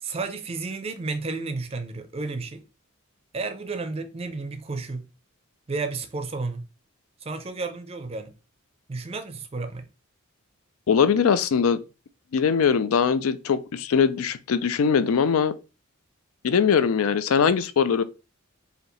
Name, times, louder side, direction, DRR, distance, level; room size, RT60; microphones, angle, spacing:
voice 1, 0.0-2.6 3.3-5.1 5.7-6.7 7.2-8.3 8.9-9.8, right 3 dB, 25° right, 0.5 m, -32 dB
voice 2, 10.9-11.8 12.3-15.5 16.4-18.0, left 6 dB, 75° left, 0.4 m, -21 dB
5.0 x 2.7 x 3.0 m
head